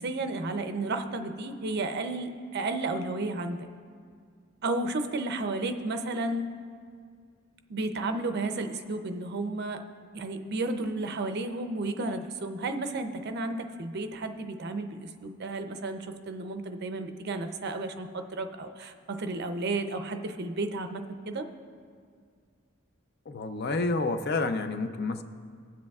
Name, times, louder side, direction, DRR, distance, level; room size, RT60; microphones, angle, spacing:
voice 1, 0.0-3.7 4.6-6.5 7.7-9.8 10.1-21.5, right 2 dB, 55° right, 7 dB, 0.6 m, -32 dB
voice 2, 23.3-25.2, left 3 dB, 50° left, 9 dB, 0.5 m, -29 dB
22.5 x 7.7 x 2.3 m, 2.1 s
head